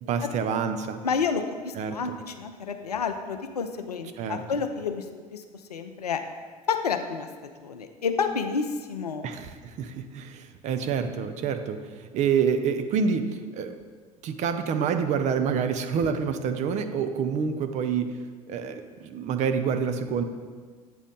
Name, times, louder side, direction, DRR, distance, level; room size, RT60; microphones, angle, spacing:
voice 1, 0.0-1.0 1.8-2.2 4.2-4.4 9.2-13.8 14.2-18.2 18.5-20.2, right 6 dB, 35° right, 7 dB, 0.5 m, -27 dB
voice 2, 1.0-5.0 5.3-5.4 5.7-6.2 6.7-7.3 7.6-9.3, left 5 dB, 80° left, 7 dB, 0.5 m, -29 dB
8.2 x 3.1 x 5.3 m, 1.6 s
figure-of-eight pair, 65°, 20 cm